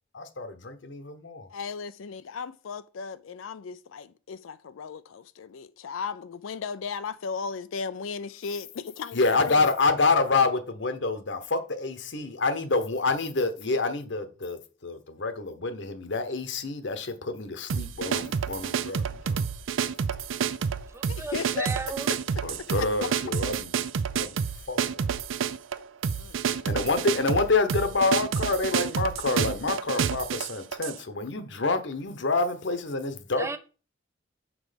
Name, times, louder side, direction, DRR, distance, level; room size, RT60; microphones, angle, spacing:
voice 1, 0.1-1.5 9.1-19.5 22.4-23.7 24.1-24.4 24.7-25.1 26.5-33.5, left 3 dB, 65° left, 0.9 m, -27 dB
voice 2, 1.5-9.6 21.1-21.7 22.1-22.2 22.6-22.9 26.2-26.9, left 5 dB, 90° left, 0.4 m, -36 dB
sound 1, 17.7-31.0, right 7 dB, 85° right, 0.5 m, -29 dB
voice 3, 20.9-22.1 33.4-33.6, right 3 dB, 15° right, 0.4 m, -35 dB
6.2 x 4.7 x 5.1 m
head